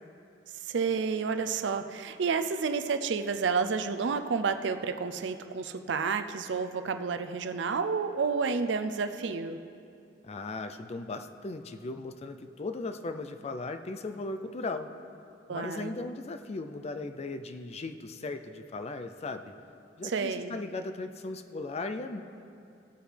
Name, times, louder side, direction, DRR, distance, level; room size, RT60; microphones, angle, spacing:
voice 1, 0.7-9.6 15.5-16.0 20.0-20.6, right 5 dB, 75° right, 9 dB, 0.5 m, -30 dB
voice 2, 10.2-14.9 15.5-19.5 20.0-22.2, left 3 dB, 35° left, 8 dB, 0.4 m, -37 dB
16.5 x 7.9 x 3.3 m, 2.5 s
head